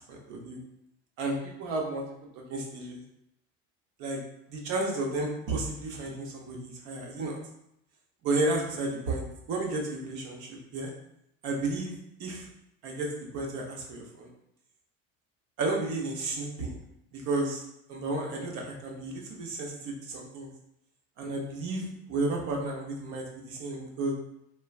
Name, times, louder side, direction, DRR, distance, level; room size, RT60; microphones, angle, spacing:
voice 1, 0.1-0.6 1.2-2.0 2.5-3.0 4.0-4.2 4.5-7.4 8.2-10.9 11.4-12.5 12.8-14.3 15.6-16.8 17.1-17.6 17.9-20.5 21.2-24.1, right 2 dB, 60° right, 0 dB, 0.9 m, -32 dB
3.3 x 2.3 x 2.3 m, 0.78 s
hypercardioid pair, 85°, 33 cm